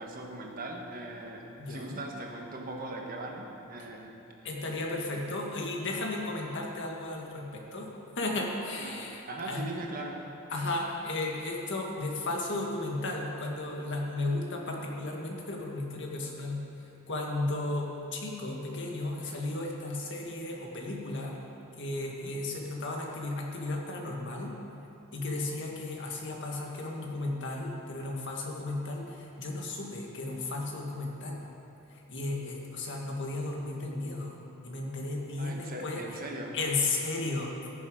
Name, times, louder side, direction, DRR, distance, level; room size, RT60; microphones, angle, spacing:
voice 1, 0.0-4.1 4.4-4.7 8.8-10.3 22.0-22.4 35.4-36.6, right 2 dB, 40° right, 0 dB, 1.4 m, -40 dB
voice 2, 1.6-2.0 4.4-9.7 10.5-16.6 17.1-21.4 21.8-24.6 25.1-31.5 32.1-34.4 34.6-36.0 36.5-37.7, left 2 dB, 60° left, 0 dB, 1.7 m, -34 dB
15.0 x 7.1 x 5.2 m, 2.8 s
head